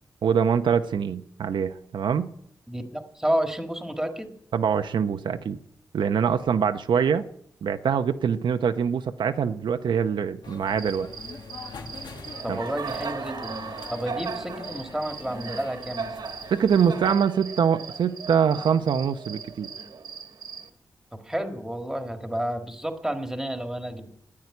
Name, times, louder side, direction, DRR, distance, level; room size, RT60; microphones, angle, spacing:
voice 1, 0.2-2.3 4.5-5.6 5.9-7.2 7.6-11.1 12.5-12.6 16.5-19.7, right 7 dB, 80° right, 8 dB, 0.7 m, -24 dB
voice 2, 2.7-4.3 12.4-16.2 21.2-24.1, right 1 dB, 5° right, 5 dB, 1.6 m, -30 dB
sound 1, 10.4-17.1, left 4 dB, 65° left, 1.7 m, -43 dB
Cricket, 10.7-20.7, right 5 dB, 65° right, 1.5 m, -38 dB
13.5 x 9.6 x 9.7 m, 0.71 s
wide cardioid pair, 135°, 8 cm